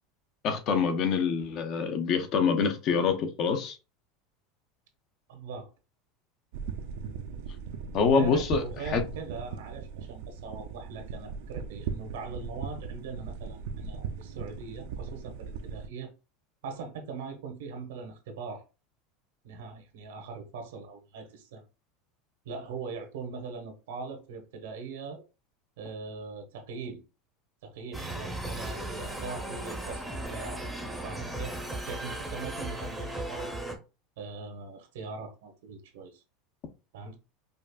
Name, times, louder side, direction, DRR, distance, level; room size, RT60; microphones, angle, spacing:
voice 1, 0.4-3.8 7.9-9.0, left 5 dB, 45° left, 0.7 m, -26 dB
voice 2, 5.3-5.7 8.0-16.1 16.6-18.6 19.4-21.6 22.4-25.2 25.8-27.0 27.6-33.6 34.2-36.2 36.9-37.2, right 4 dB, 90° right, 1.1 m, -41 dB
sound 1, 6.5-15.9, right 6 dB, 75° right, 0.5 m, -38 dB
sound 2, 27.9-33.7, right 1 dB, ahead, 0.8 m, -36 dB
5.1 x 2.4 x 2.3 m
supercardioid pair, 145°, 0 cm